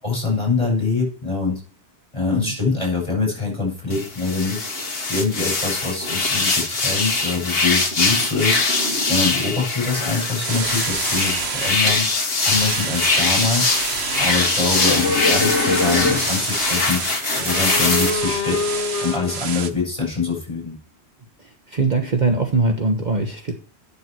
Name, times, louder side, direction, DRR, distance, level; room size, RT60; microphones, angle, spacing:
voice 1, 0.0-1.6 2.1-4.7 5.1-8.6 9.1-12.1 12.4-13.7 14.2-17.0 17.4-18.6 19.0-20.8, left 4 dB, 25° left, -2 dB, 7.1 m, -24 dB
sound 1, 3.9-18.1, left 3 dB, 60° left, 1.9 m, -22 dB
sound 2, 10.4-11.8 12.4-19.7, right 6 dB, 70° right, 1.2 m, -28 dB
sound 3, 14.1-16.6 17.2-19.4, left 4 dB, 80° left, 1.3 m, -25 dB
voice 2, 21.7-23.5, right 3 dB, 40° right, 3 dB, 1.2 m, -21 dB
9.5 x 7.1 x 5.9 m, 0.42 s
omnidirectional pair, 1.1 m